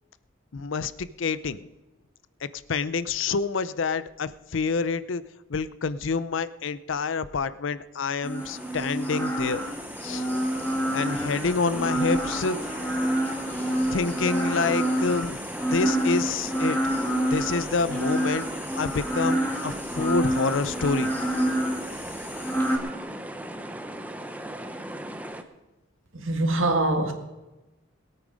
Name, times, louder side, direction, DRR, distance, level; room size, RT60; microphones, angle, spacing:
voice 1, 0.5-1.7 2.4-5.2 5.5-9.6 10.0-10.2 10.9-12.6 13.9-15.4 15.7-16.8 17.3-21.1, left 4 dB, 70° left, 0.5 m, -27 dB
sound 1, 8.2-22.8, right 1 dB, 10° left, 2.1 m, -28 dB
sound 2, 8.4-25.4, right 1 dB, 5° right, 0.7 m, -38 dB
voice 2, 26.1-27.1, right 2 dB, 80° right, 1.9 m, -23 dB
21.0 x 9.0 x 5.1 m
head